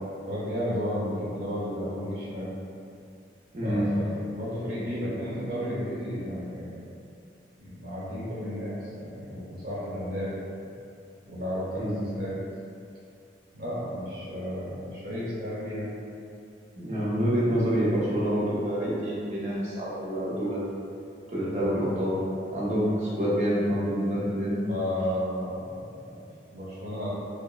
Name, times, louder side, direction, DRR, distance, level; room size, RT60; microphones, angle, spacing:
voice 1, 0.3-2.5 3.6-4.1 4.3-6.7 7.6-10.3 11.3-12.3 13.5-15.9 24.7-26.2 26.5-27.1, equal, 55° right, -9 dB, 1.0 m, -33 dB
voice 2, 3.5-3.9 11.8-12.0 16.8-20.7 21.3-22.2 22.5-24.7, equal, 40° right, -8 dB, 0.6 m, -27 dB
2.8 x 2.0 x 2.3 m, 2.5 s
head